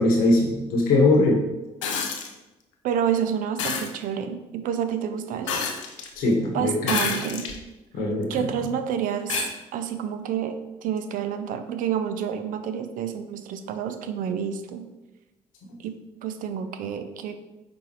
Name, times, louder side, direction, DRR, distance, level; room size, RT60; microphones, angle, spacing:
voice 1, 0.0-1.4 6.2-7.0 7.9-8.3, left 2 dB, 70° left, -1 dB, 1.0 m, -21 dB
sound 1, 1.8-2.3 3.6-3.9 5.5-6.1 6.8-7.6 8.2-8.3 9.3-9.5 11.0-11.1, left 6 dB, 90° left, 0.4 m, -28 dB
voice 2, 2.8-5.7 6.5-7.5 8.3-14.8 15.8-15.9 16.2-17.4, right 8 dB, 60° right, 9 dB, 0.4 m, -29 dB
5.1 x 3.4 x 2.9 m, 1.0 s
hypercardioid pair, 50°, 15 cm